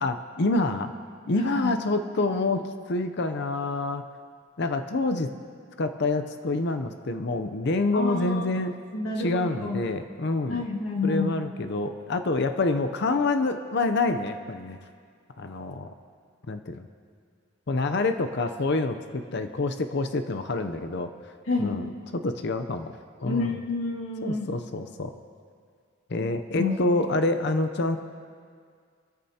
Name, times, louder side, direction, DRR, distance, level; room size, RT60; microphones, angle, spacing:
voice 1, 0.0-0.9 1.3-4.0 4.6-5.3 5.8-8.8 9.2-10.7 11.0-14.8 15.4-15.9 16.5-16.9 17.7-21.1 21.6-23.5 24.2-25.1 26.1-28.0, left 2 dB, 55° left, 8 dB, 0.6 m, -27 dB
voice 2, 1.4-1.7 7.9-8.4 8.9-9.8 10.5-11.3 21.5-21.8 23.2-24.5 26.6-26.8, left 3 dB, 85° left, -3 dB, 2.1 m, -29 dB
25.0 x 14.0 x 2.9 m, 2.1 s
head